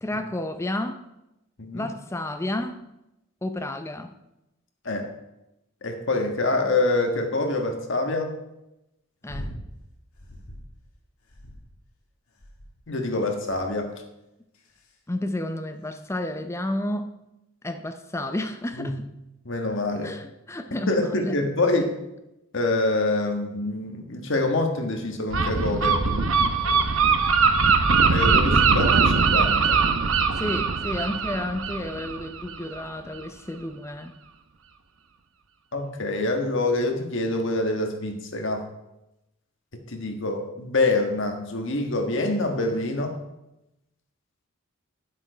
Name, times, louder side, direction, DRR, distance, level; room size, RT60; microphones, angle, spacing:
voice 1, 0.0-1.0 1.7-2.8 3.4-4.1 9.2-9.5 15.1-17.2 17.6-19.0 20.0-21.4 30.4-34.1, left 1 dB, 10° left, 8 dB, 0.5 m, -31 dB
voice 2, 5.8-8.3 12.9-13.8 18.7-18.9 19.4-20.1 20.9-21.9 22.5-26.2 28.1-29.8 35.7-38.6 39.9-43.1, left 2 dB, 55° left, 4 dB, 1.4 m, -26 dB
sound 1, 9.3-9.7 10.2-10.7 11.3-11.9 12.4-12.9 13.5-13.8 14.5-14.9 15.9-16.0, equal, 80° left, 1.7 m, -40 dB
Gull seagull, 25.3-32.8, right 5 dB, 65° right, 0.8 m, -21 dB
10.0 x 7.3 x 5.0 m, 0.92 s
head